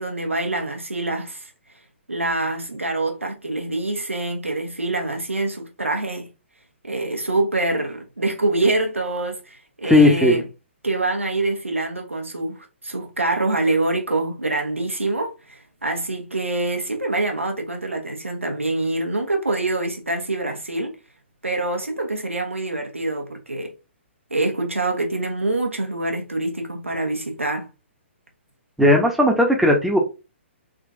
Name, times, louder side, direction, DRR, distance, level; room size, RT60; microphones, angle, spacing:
voice 1, 0.0-1.5 2.1-6.3 6.8-10.4 10.8-21.0 21.4-23.7 24.3-27.7, right 2 dB, 90° right, 0.9 m, -25 dB
voice 2, 9.8-10.4 28.8-30.0, left 1 dB, ahead, 0.6 m, -16 dB
3.6 x 2.4 x 2.5 m
figure-of-eight pair, 125°, 7 cm